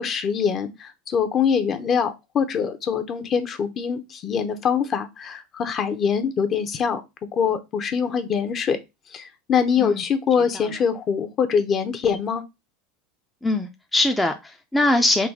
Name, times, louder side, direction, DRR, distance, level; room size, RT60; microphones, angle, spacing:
voice 1, 0.0-7.0 7.3-8.8 9.1-12.4, left 6 dB, 35° left, 0.8 m, -23 dB
voice 2, 13.4-15.3, left 2 dB, 10° left, 0.5 m, -22 dB
4.0 x 2.7 x 4.6 m
supercardioid pair, 115°, 0 cm